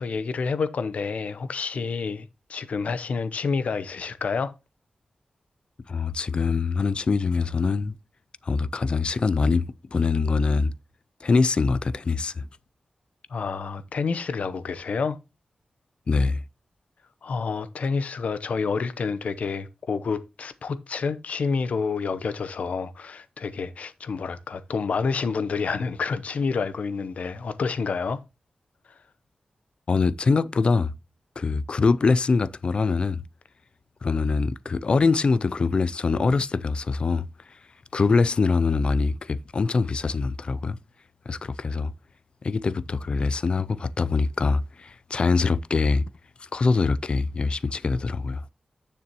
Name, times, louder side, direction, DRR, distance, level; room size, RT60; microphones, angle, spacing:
voice 1, 0.0-4.5 13.3-15.2 17.2-28.2 28.9-29.0, left 5 dB, 75° left, 0.7 m, -28 dB
voice 2, 5.9-7.9 8.4-10.7 11.2-12.5 16.1-16.4 29.9-30.9 31.4-33.2 34.0-37.3 37.9-40.8 41.3-41.9 42.4-46.0 46.5-48.4, left 4 dB, 45° left, 0.4 m, -23 dB
9.5 x 6.8 x 2.9 m
wide cardioid pair, 140°, 2 cm